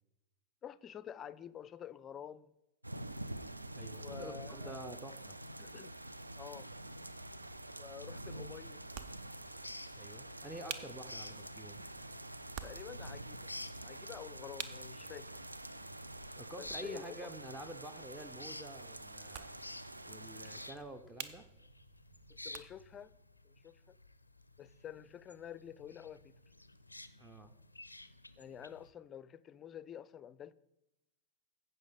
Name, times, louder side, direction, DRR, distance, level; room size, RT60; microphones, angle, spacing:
voice 1, 0.6-2.5 3.9-4.8 5.6-5.9 6.4-6.7 7.8-8.8 12.6-13.5 13.8-15.3 16.6-17.3 22.3-23.1 23.4-24.0 24.6-26.3 28.4-30.5, left 9 dB, 25° left, 0.4 m, -49 dB
sound 1, 2.8-20.7, right 1 dB, 85° right, 0.4 m, -47 dB
voice 2, 3.7-5.4 10.0-11.8 16.4-19.5 20.1-21.4 27.1-27.5, right 1 dB, 10° right, 0.6 m, -48 dB
sound 2, 6.7-23.0, right 8 dB, 45° right, 0.6 m, -53 dB
sound 3, 9.5-28.9, left 2 dB, 85° left, 0.5 m, -53 dB
15.5 x 5.5 x 3.8 m
figure-of-eight pair, 90°, 0 cm